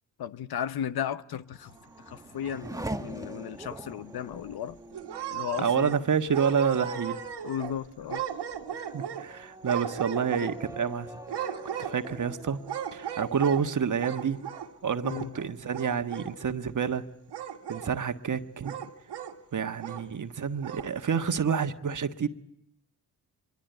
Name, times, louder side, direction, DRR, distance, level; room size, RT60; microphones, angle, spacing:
voice 1, 0.2-1.7 2.1-4.8 5.3-6.0 7.4-8.2 15.0-15.4, left 9 dB, 55° left, 1.0 m, -35 dB
Race car auto racing / Accelerating revving vroom, 1.3-14.6 15.0-15.7, right 1 dB, 10° right, 1.3 m, -44 dB
sound 1, 2.1-3.0 3.4-3.5 3.9-4.0 4.9-6.1 6.3-7.8 8.1-9.3 9.6-10.8 11.3-12.2 12.7-13.6 14.0-14.7 15.0-15.5 15.7-16.3 17.3-17.9 18.6-19.3 19.8-20.0 20.6-20.9, right 9 dB, 65° right, 1.9 m, -36 dB
voice 2, 5.6-7.2 8.7-11.1 11.4-11.5 11.8-12.6 12.9-14.4 14.8-17.1 17.7-18.7 19.5-22.3, right 7 dB, 45° right, 1.5 m, -28 dB
25.5 x 22.5 x 8.1 m
hypercardioid pair, 45°, 44 cm